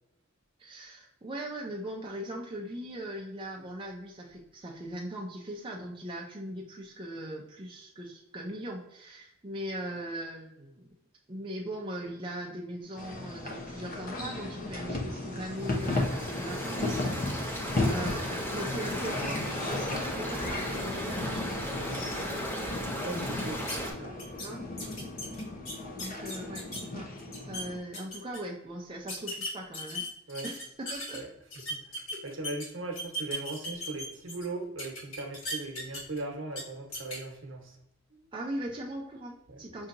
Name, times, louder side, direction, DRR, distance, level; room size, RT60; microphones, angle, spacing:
voice 1, 0.6-10.9 11.3-21.5 24.4-24.6 25.9-27.1 27.4-30.1 30.4-31.2 32.1-32.2 38.3-39.9, right 1 dB, 25° right, -1 dB, 0.5 m, -40 dB
sound 1, 13.0-27.8, left 2 dB, 40° left, 0.8 m, -35 dB
sound 2, 15.6-23.9, equal, 10° left, 0.7 m, -37 dB
voice 2, 23.0-24.1 25.0-25.1 25.9-26.0 30.3-30.5 31.1-31.3 31.7-37.8 38.1-38.3 39.5-39.6, right 2 dB, 65° right, 2 dB, 1.0 m, -39 dB
sound 3, 23.7-23.8 24.2-24.5 24.8-26.8 27.2-27.6 27.9-28.4 29.1-31.2 31.5-32.7 33.0-34.4 34.8-36.2 36.5-36.6 36.9-37.2, equal, 70° left, 1.5 m, -37 dB
5.5 x 2.7 x 2.5 m, 0.82 s
head